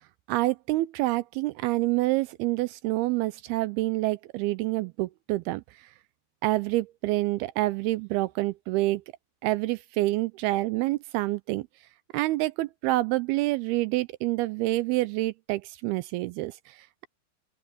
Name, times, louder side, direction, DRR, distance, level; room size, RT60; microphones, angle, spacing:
voice 1, 0.3-5.9 6.4-9.0 9.4-11.7 12.1-17.1, right 19 dB, 80° right, 2.4 m, -27 dB
open air
omnidirectional pair, 4.6 m